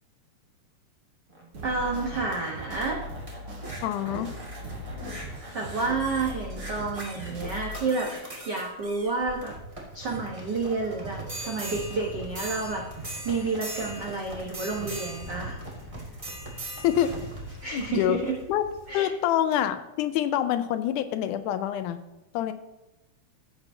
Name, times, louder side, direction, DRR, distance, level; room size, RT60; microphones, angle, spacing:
sound 1, 1.3-19.0 19.5-19.6, right 1 dB, 20° right, 1.0 m, -40 dB
sound 2, 1.5-7.8, equal, 45° right, 1.3 m, -39 dB
voice 1, 1.6-3.0 5.5-9.5 9.9-12.8 13.2-15.6 17.6-18.3 18.9-19.1, right 3 dB, 80° right, -1 dB, 0.9 m, -30 dB
voice 2, 3.8-4.3 16.8-17.1 17.7-18.2 18.5-18.6 18.9-22.0 22.3-22.5, left 11 dB, 80° left, 11 dB, 1.9 m, -26 dB
15.0 x 6.8 x 2.7 m, 1.0 s
omnidirectional pair, 3.8 m